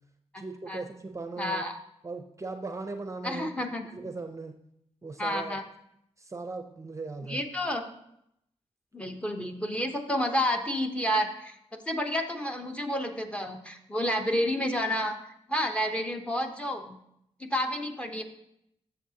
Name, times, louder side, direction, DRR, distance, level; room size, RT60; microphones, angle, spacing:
voice 1, 0.4-1.6 2.0-3.5 3.9-4.6 5.0-5.6 6.2-7.4, right 3 dB, 25° right, 6 dB, 0.6 m, -38 dB
voice 2, 1.4-1.8 3.2-3.9 5.2-5.6 7.3-7.8 8.9-11.5 11.9-15.2 15.5-17.0 17.4-18.2, equal, 10° left, 4 dB, 0.8 m, -30 dB
12.0 x 6.9 x 2.8 m, 0.77 s
wide cardioid pair, 110°, 11 cm